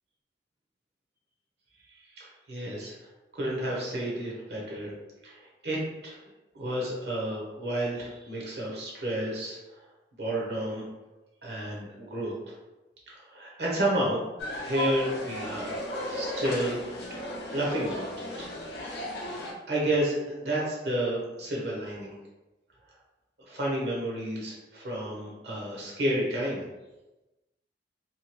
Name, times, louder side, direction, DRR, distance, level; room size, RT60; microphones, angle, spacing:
voice 1, 1.9-2.9 3.3-4.9 5.2-6.2 6.5-9.6 10.2-10.8 11.4-12.6 13.1-16.8 17.1-18.5 18.8-19.2 19.7-22.1 23.5-26.7, right 1 dB, 60° right, -3 dB, 0.6 m, -31 dB
sound 1, 14.4-19.5, left 1 dB, 60° left, 0.6 m, -35 dB
2.7 x 2.2 x 2.9 m, 1.1 s
head